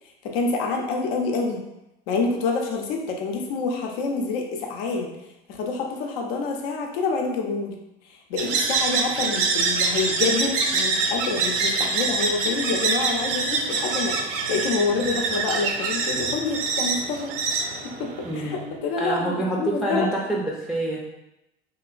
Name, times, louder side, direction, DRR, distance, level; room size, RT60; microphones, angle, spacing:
voice 1, 0.2-1.6 2.1-5.1 5.5-7.8 8.1-17.6 18.0-20.1, left 4 dB, 70° left, 2 dB, 0.7 m, -27 dB
sound 1, 8.4-18.6, right 4 dB, 65° right, 0.6 m, -25 dB
voice 2, 18.2-21.0, right 1 dB, ahead, -4 dB, 0.5 m, -27 dB
3.0 x 2.9 x 2.4 m, 0.89 s
hypercardioid pair, 75°, 30 cm